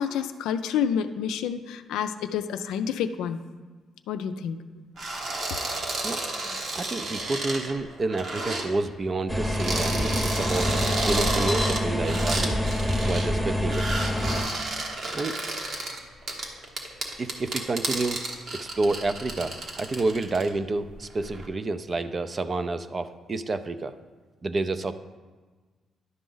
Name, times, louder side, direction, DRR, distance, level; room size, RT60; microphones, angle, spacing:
voice 1, 0.0-3.4 4.1-4.6, left 8 dB, 90° left, 9 dB, 0.4 m, -28 dB
sound 1, 5.0-8.7 9.4-13.3 13.6-20.5 20.9-21.5, right 2 dB, 60° right, 1.2 m, -31 dB
voice 2, 6.7-10.7 11.1-12.6 13.0-13.9 15.1-15.4 17.2-18.2 18.5-23.9 24.4-24.9, right 3 dB, 40° right, 11 dB, 0.5 m, -29 dB
sound 2, 9.3-14.4, left 1 dB, 5° right, 0.9 m, -26 dB
11.0 x 5.0 x 3.9 m, 1.4 s
cardioid pair, 75°, 0 cm